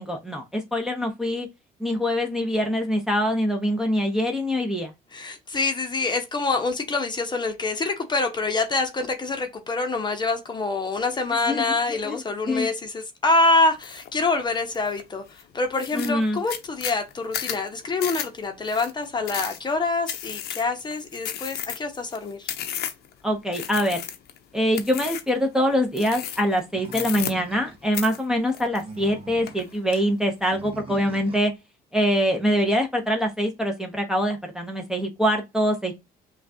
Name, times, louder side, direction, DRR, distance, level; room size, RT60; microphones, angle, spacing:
voice 1, 0.0-1.5 1.8-4.9 11.5-12.2 12.5-12.7 15.9-16.4 23.2-24.0 24.5-31.5 31.9-35.9, equal, 5° right, 0.8 m, -24 dB
voice 2, 5.1-22.5, left 3 dB, 25° left, 0.8 m, -26 dB
sound 1, 13.8-14.1 14.5-15.0 15.4-15.5 15.7-23.1 23.5-24.4 24.7-25.4 25.9-26.6 26.9-27.7 27.9-29.1 29.5-30.0, left 10 dB, 70° left, 0.7 m, -33 dB
Animal, 26.7-27.9 28.6-29.7 30.5-31.5, right 4 dB, 35° right, 0.8 m, -41 dB
5.6 x 2.4 x 2.7 m
cardioid pair, 110°, 17 cm